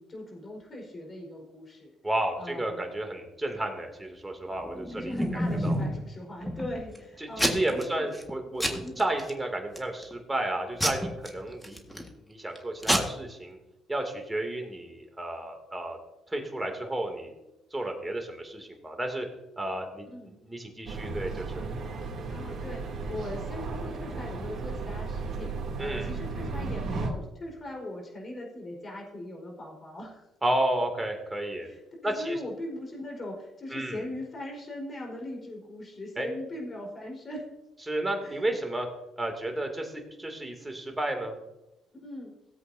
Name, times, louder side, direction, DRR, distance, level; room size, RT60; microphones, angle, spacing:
voice 1, 0.0-1.9 2.4-2.8 5.0-8.1 8.8-9.0 20.1-20.3 22.3-25.5 25.8-30.3 31.6-37.4 38.2-38.4 42.0-42.3, left 1 dB, 35° left, 0 dB, 4.4 m, -40 dB
voice 2, 2.0-5.8 7.2-13.6 13.9-16.0 16.3-17.3 17.7-19.3 19.6-21.6 25.8-26.1 30.4-31.7 32.0-32.4 33.7-34.0 36.2-36.3 37.9-38.9 39.2-41.3, right 1 dB, 15° right, 3 dB, 2.5 m, -32 dB
Packing tape duct tape / Tearing, 4.6-6.0 6.5-7.0 7.4-7.8 8.1-8.3 8.6-9.3 9.8-10.1 10.8-12.1 12.5-12.6 12.8-13.0, equal, 5° left, 1.7 m, -29 dB
sound 1, 20.9-27.1, right 3 dB, 55° right, 2.7 m, -35 dB
17.0 x 8.0 x 2.7 m, 0.94 s
cardioid pair, 80°, 0 cm